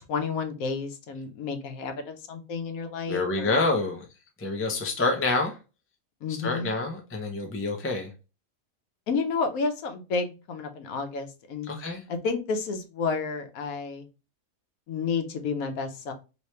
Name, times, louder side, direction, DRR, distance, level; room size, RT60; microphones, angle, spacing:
voice 1, 0.0-3.6 6.2-6.7 9.1-11.7 12.1-14.1 14.9-16.1, left 4 dB, 85° left, 1.2 m, -31 dB
voice 2, 3.1-4.0 4.4-5.6 6.3-8.1 11.6-12.0, left 3 dB, 20° left, 0.3 m, -27 dB
3.1 x 3.0 x 3.1 m
omnidirectional pair, 1.4 m